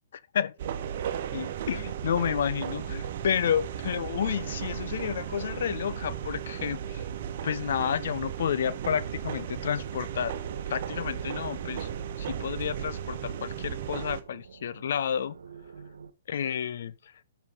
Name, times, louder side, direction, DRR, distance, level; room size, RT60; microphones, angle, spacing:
voice 1, 0.1-0.6 1.3-7.0 7.4-10.4 10.7-11.9 12.2-15.4 16.3-17.1, left 8 dB, 60° left, 0.8 m, -30 dB
sound 1, 0.6-14.2, right 9 dB, 55° right, 1.2 m, -35 dB
sound 2, 10.4-16.1, right 6 dB, 75° right, 1.3 m, -46 dB
12.5 x 6.5 x 4.0 m
hypercardioid pair, 125°, 0 cm